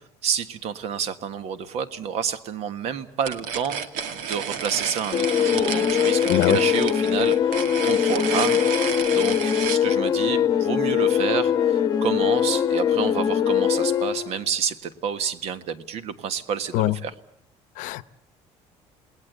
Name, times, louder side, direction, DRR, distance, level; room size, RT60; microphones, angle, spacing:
voice 1, 0.0-3.8 4.1-17.1, right 7 dB, 55° right, 1.5 m, -29 dB
sound 1, 3.2-9.8, right 7 dB, 80° right, 2.1 m, -31 dB
sound 2, 5.1-14.4, left 9 dB, 30° left, 1.1 m, -22 dB
voice 2, 6.3-6.6 16.7-16.9 17.8-18.0, left 17 dB, 75° left, 0.9 m, -22 dB
28.5 x 19.5 x 8.1 m
cardioid pair, 165°, 13 cm